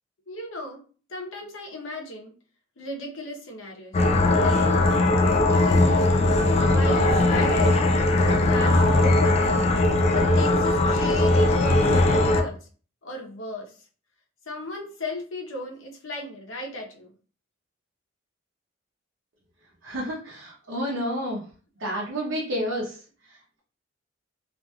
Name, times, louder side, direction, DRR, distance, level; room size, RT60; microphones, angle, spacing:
voice 1, 0.3-0.8 1.1-2.3 2.8-4.0 4.2-4.7 5.3-5.9 6.2-9.7 10.1-12.6 13.0-13.8 14.5-17.1 21.8-21.9, left 2 dB, 80° left, 1 dB, 0.8 m, -36 dB
sound 1, 3.9-12.4, left 2 dB, 30° left, 0.3 m, -20 dB
voice 2, 19.8-21.4 21.8-23.0, equal, 80° right, -4 dB, 0.7 m, -29 dB
2.7 x 2.5 x 2.2 m, 0.39 s
head